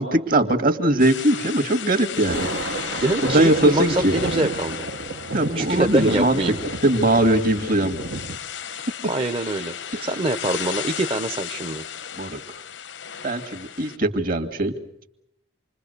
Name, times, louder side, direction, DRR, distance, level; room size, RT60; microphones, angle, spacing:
voice 1, 0.0-2.9 3.2-4.2 5.3-6.4 6.8-8.2 9.9-10.1 12.2-12.4 13.2-14.7, right 1 dB, 50° right, 8 dB, 2.3 m, -21 dB
sound 1, 1.0-14.0, left 8 dB, 80° left, 0.9 m, -34 dB
Thunder, 2.1-8.4, right 2 dB, 75° right, 1.2 m, -31 dB
voice 2, 3.0-4.9 5.6-6.6 9.1-11.9, right 2 dB, 30° right, 5 dB, 0.9 m, -25 dB
28.0 x 22.0 x 6.8 m, 0.78 s
head